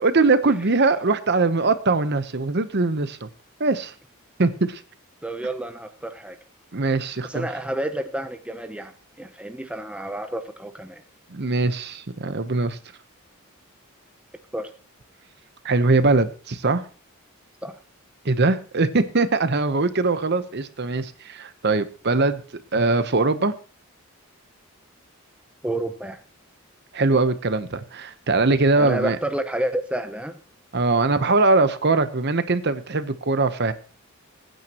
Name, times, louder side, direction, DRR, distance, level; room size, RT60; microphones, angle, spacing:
voice 1, 0.0-3.3 3.6-3.9 4.4-4.8 6.7-7.5 11.3-12.8 15.6-16.8 18.2-22.4 22.7-23.5 26.9-29.2 30.7-33.7, right 3 dB, 50° right, 11 dB, 0.9 m, -21 dB
voice 2, 5.2-6.4 7.2-11.0 14.5-14.7 17.6-17.8 25.6-26.2 28.8-30.4, right 1 dB, 5° right, 7 dB, 0.7 m, -30 dB
21.5 x 9.3 x 3.0 m, 0.39 s
head